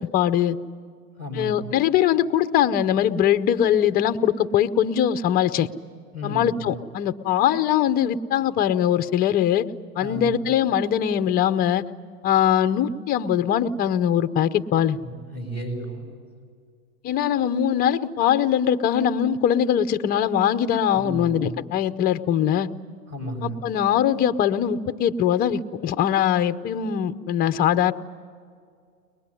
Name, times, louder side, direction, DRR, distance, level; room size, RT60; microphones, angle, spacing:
voice 1, 0.1-0.6 1.4-5.7 6.2-9.7 10.0-11.8 12.2-15.0 17.0-22.7 23.4-27.9, left 10 dB, 20° left, 12 dB, 0.6 m, -21 dB
voice 2, 1.2-1.7 6.1-6.7 10.0-10.3 15.0-16.0 20.9-21.6 23.1-23.6, equal, 20° right, 3 dB, 6.5 m, -33 dB
23.0 x 20.5 x 9.8 m, 2.2 s
hypercardioid pair, 130°, 46 cm